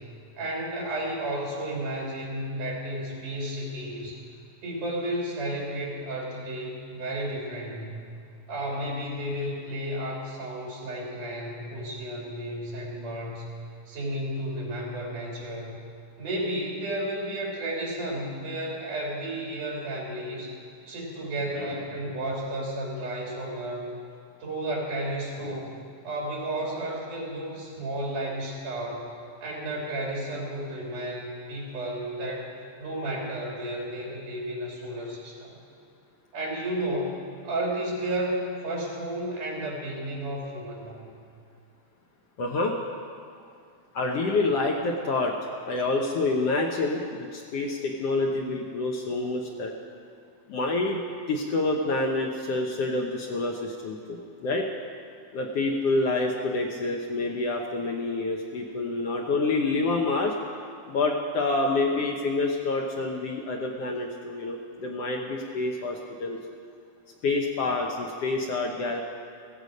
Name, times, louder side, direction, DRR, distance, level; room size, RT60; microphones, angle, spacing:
voice 1, 0.4-4.2 4.6-8.1 8.5-13.5 13.9-15.8 16.2-20.5 20.9-23.9 24.4-25.7 26.0-29.1 29.4-32.5 32.8-35.5 36.3-41.1, right 1 dB, 80° right, -3 dB, 4.5 m, -32 dB
voice 2, 42.4-42.7 43.9-45.3 45.6-49.7 50.5-51.0 51.3-54.7 55.3-60.3 60.9-66.4 67.2-69.0, left 3 dB, 65° left, 1 dB, 1.7 m, -27 dB
15.5 x 15.0 x 5.2 m, 2.4 s
omnidirectional pair, 3.6 m